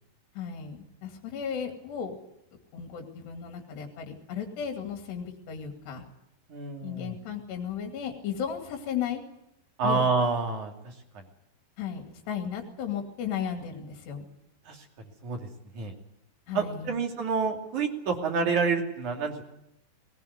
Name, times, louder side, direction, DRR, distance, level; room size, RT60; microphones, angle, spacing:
voice 1, 0.4-2.2 2.7-6.0 6.8-9.2 9.8-10.1 11.8-14.3 16.5-17.0, left 8 dB, 75° left, 4 dB, 4.4 m, -35 dB
voice 2, 6.5-7.2 9.8-10.9 14.7-14.9 15.2-15.5 15.7-15.9 16.5-19.4, right 4 dB, 50° right, 2 dB, 3.7 m, -28 dB
20.5 x 19.5 x 9.5 m, 0.80 s
omnidirectional pair, 5.0 m